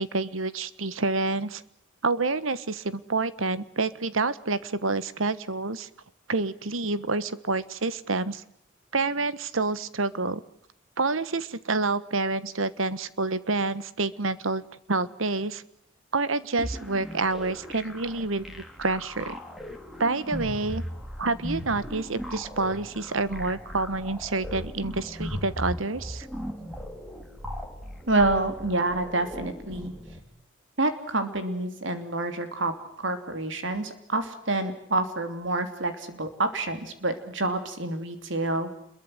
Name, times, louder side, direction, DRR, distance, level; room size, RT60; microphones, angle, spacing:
voice 1, 0.0-1.6 2.0-5.9 6.3-8.4 8.9-10.4 11.0-14.6 14.9-15.6 16.1-19.4 20.0-20.8 21.2-26.3, right 3 dB, 90° right, 15 dB, 1.3 m, -28 dB
sound 1, 16.6-30.2, equal, ahead, 3.1 m, -38 dB
voice 2, 28.1-29.9 30.8-32.7 33.0-38.7, right 2 dB, 70° right, 8 dB, 3.1 m, -27 dB
27.0 x 22.5 x 7.9 m, 0.72 s
head